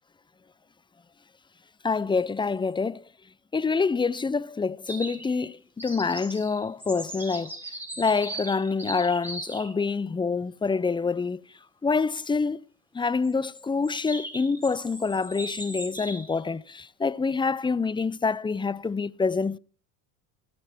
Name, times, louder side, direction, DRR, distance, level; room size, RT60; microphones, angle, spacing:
voice 1, 1.8-3.0 3.5-7.5 8.0-11.4 11.8-12.6 12.9-19.6, left 4 dB, 10° left, 0.5 m, -26 dB
sound 1, 4.9-5.4 5.8-9.7 13.2-16.3, right 1 dB, 5° right, 5.4 m, -39 dB
17.0 x 6.9 x 5.9 m
supercardioid pair, 85°, 42 cm